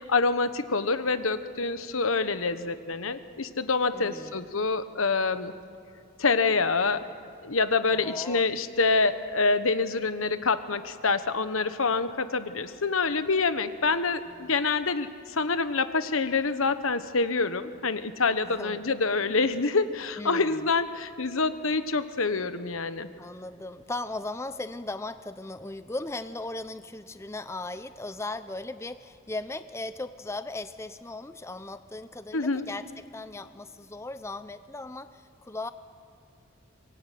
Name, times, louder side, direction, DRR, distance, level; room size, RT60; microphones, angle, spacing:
voice 1, 0.1-5.5 6.2-7.0 7.4-23.1 32.3-32.6, left 4 dB, 80° left, 11 dB, 1.2 m, -26 dB
voice 2, 3.9-4.4 7.9-8.4 14.3-14.6 18.4-18.8 20.2-20.7 23.2-35.7, left 2 dB, 15° left, 11 dB, 0.5 m, -37 dB
24.0 x 19.5 x 9.3 m, 2.6 s
head